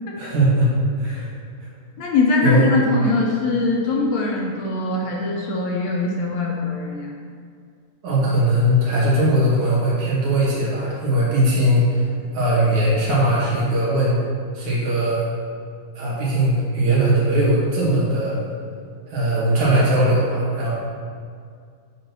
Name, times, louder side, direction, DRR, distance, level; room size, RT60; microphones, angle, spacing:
voice 1, 0.2-0.7 1.0-1.3 2.4-2.7 8.0-12.1 12.3-14.2 14.5-15.3 15.9-18.5 19.1-20.7, right 1 dB, 70° right, -7 dB, 3.4 m, -19 dB
voice 2, 2.0-7.1, left 3 dB, 75° left, -1 dB, 1.9 m, -22 dB
9.1 x 3.9 x 6.0 m, 2.2 s
omnidirectional pair, 3.5 m